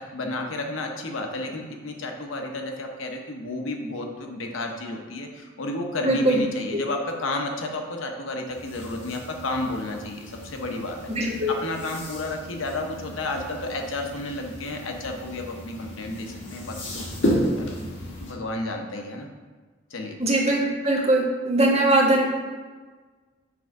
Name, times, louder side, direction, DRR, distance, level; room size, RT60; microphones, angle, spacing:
voice 1, 0.1-17.1 17.6-17.7 18.2-19.3 19.9-20.2, left 2 dB, 90° left, 3 dB, 0.8 m, -32 dB
voice 2, 6.0-6.4 11.2-11.5 20.2-22.2, right 1 dB, 35° right, -3 dB, 1.2 m, -21 dB
sound 1, 8.5-18.3, equal, 70° left, 1.5 m, -33 dB
6.0 x 3.4 x 5.2 m, 1.4 s
head